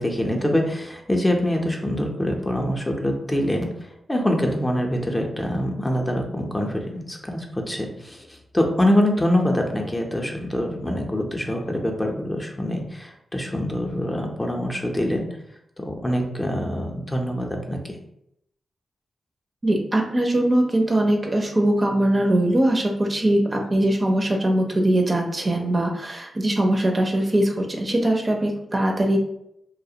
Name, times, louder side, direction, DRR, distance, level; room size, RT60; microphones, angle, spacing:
voice 1, 0.0-15.3 15.8-17.8, left 1 dB, 20° left, 1 dB, 0.5 m, -24 dB
voice 2, 19.6-29.2, right 1 dB, 35° right, 1 dB, 0.4 m, -21 dB
2.3 x 2.0 x 2.7 m, 0.78 s
cardioid pair, 50°, 0 cm